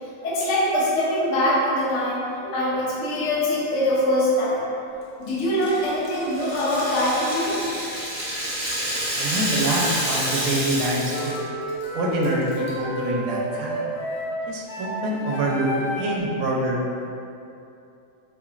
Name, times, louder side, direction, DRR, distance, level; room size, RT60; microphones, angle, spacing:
voice 1, 0.2-2.2 2.5-4.6 5.2-7.6, left 1 dB, 60° left, -7 dB, 1.0 m, -23 dB
Rattle (instrument), 5.6-11.4 11.7-11.8 12.2-12.7, right 1 dB, 25° right, 0.4 m, -28 dB
voice 2, 9.2-11.4 11.9-13.8 14.5-15.7 16.0-16.8, right 1 dB, 80° right, -2 dB, 1.0 m, -25 dB
sound 1, 11.1-16.2, right 1 dB, 90° left, 1.2 m, -30 dB
4.0 x 2.9 x 2.4 m, 2.7 s
omnidirectional pair, 1.5 m